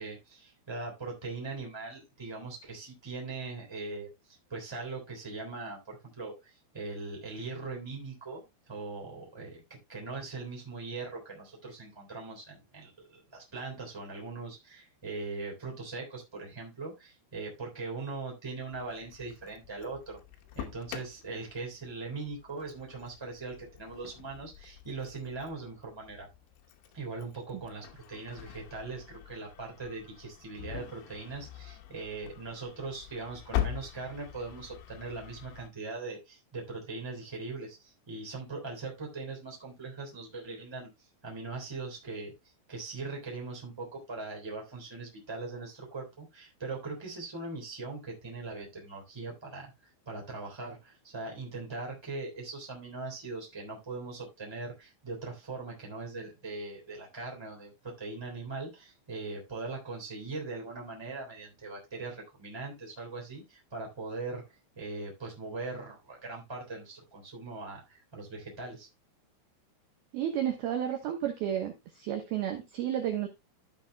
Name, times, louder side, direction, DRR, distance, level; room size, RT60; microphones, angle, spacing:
voice 1, 0.0-9.6 9.9-20.2 20.5-26.3 26.9-40.9 41.2-42.3 42.7-49.7 50.0-64.4 64.7-68.9, right 3 dB, 5° right, -1 dB, 2.4 m, -40 dB
Engine starting, 18.7-35.7, left 12 dB, 75° left, 3.1 m, -43 dB
voice 2, 70.1-73.3, right 10 dB, 70° right, 4 dB, 2.4 m, -32 dB
15.0 x 6.6 x 2.2 m, 0.22 s
omnidirectional pair, 5.7 m